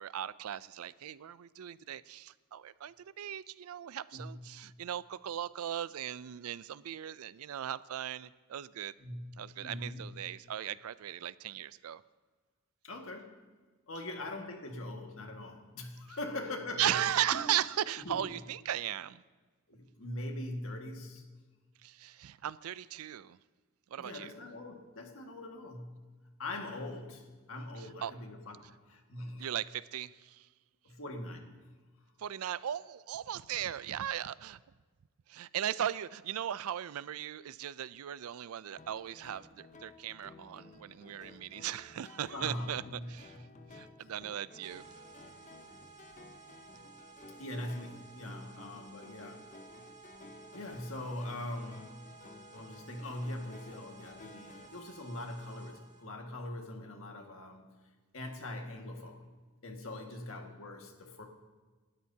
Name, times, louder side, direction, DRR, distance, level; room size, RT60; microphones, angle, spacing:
voice 1, 0.0-8.9 9.4-12.0 16.8-19.2 21.8-23.4 23.9-24.3 28.0-28.1 29.4-30.5 32.2-34.6 35.3-42.8 43.1-43.5 43.7-44.8, right 10 dB, 80° right, 18 dB, 0.4 m, -37 dB
voice 2, 4.1-4.4 9.0-10.1 12.8-13.3 13.9-17.0 17.3-17.5 18.0-18.3 19.7-21.3 24.0-26.0 26.4-29.5 30.8-31.8 42.3-43.2 44.0-44.1 47.4-49.5 50.5-51.9 52.5-57.7 58.1-59.3 59.6-61.2, left 1 dB, 65° left, 2 dB, 1.8 m, -42 dB
sound 1, 38.8-54.7, left 3 dB, 35° left, 0.8 m, -55 dB
sound 2, 44.6-56.0, right 5 dB, 35° right, 2.1 m, -55 dB
28.0 x 13.0 x 2.8 m, 1.4 s
head